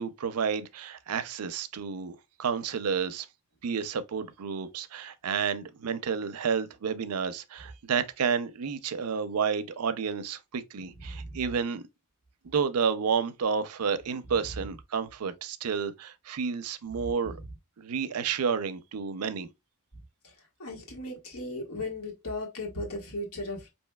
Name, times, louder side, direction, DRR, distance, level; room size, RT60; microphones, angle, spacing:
voice 1, 0.0-3.3 3.6-11.9 12.4-17.4 17.8-19.5, right 6 dB, 80° right, 0.5 m, -30 dB
voice 2, 20.6-23.7, left 1 dB, 70° left, 1.5 m, -36 dB
5.5 x 2.7 x 2.2 m
head